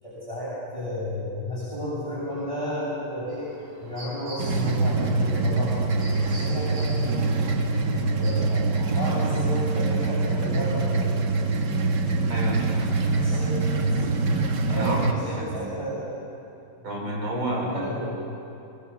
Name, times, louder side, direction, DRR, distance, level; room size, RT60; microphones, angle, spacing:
voice 1, 0.0-3.5 3.8-7.2 7.8-11.3 12.0-12.1 13.1-14.0 14.6-16.2 17.6-18.1, left 1 dB, 15° left, -10 dB, 7.6 m, -32 dB
sound 1, 3.3-8.4, right 1 dB, 25° right, 5.8 m, -45 dB
sound 2, 4.4-15.1, right 3 dB, 60° right, 2.1 m, -24 dB
voice 2, 12.3-13.0 14.7-15.7 16.8-17.9, right 1 dB, 85° right, -2 dB, 6.3 m, -30 dB
25.0 x 21.5 x 7.2 m, 2.8 s
omnidirectional pair, 2.2 m